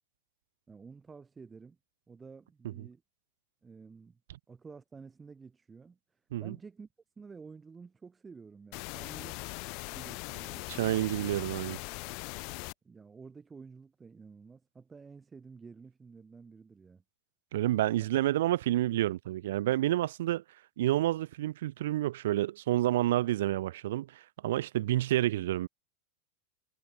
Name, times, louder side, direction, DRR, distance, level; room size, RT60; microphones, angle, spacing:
voice 1, 0.7-1.8 2.1-3.0 3.6-4.2 4.5-6.9 7.2-9.4 9.9-10.9 12.8-17.0, right 5 dB, 15° right, 2.2 m, -51 dB
sound 1, 8.7-12.7, left 33 dB, 55° left, 1.2 m, -40 dB
voice 2, 10.7-11.8 17.5-20.4 20.8-25.7, right 14 dB, 80° right, 1.2 m, -29 dB
supercardioid pair, 135°, 0 cm